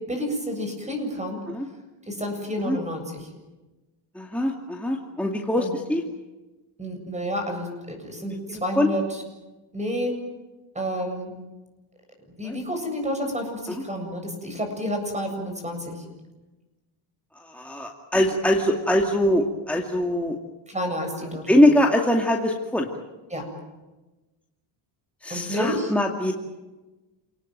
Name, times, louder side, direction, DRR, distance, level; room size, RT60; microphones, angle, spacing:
voice 1, 0.1-1.4 2.1-3.3 5.6-5.7 6.8-9.2 9.7-10.1 10.7-11.3 12.4-16.0 20.7-21.7 23.3-23.4 25.3-25.9, equal, 15° right, 4 dB, 7.8 m, -30 dB
voice 2, 4.2-6.0 8.5-8.9 12.5-12.6 17.5-20.4 21.5-22.9 25.2-26.3, left 1 dB, 5° left, 0 dB, 2.3 m, -22 dB
28.5 x 19.0 x 9.3 m, 1.1 s
cardioid pair, 125°, 49 cm